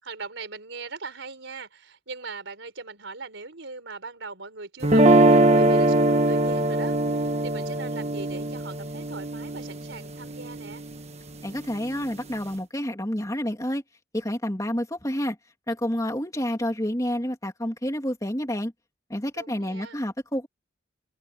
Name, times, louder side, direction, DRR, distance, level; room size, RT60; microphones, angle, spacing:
voice 1, 0.0-10.8 19.4-20.0, right 4 dB, 75° right, 4.2 m, -40 dB
sound 1, 4.8-10.9, right 1 dB, 35° right, 1.4 m, -21 dB
voice 2, 11.4-13.8 14.1-15.4 15.7-18.7 19.1-20.5, equal, 15° left, 2.8 m, -29 dB
head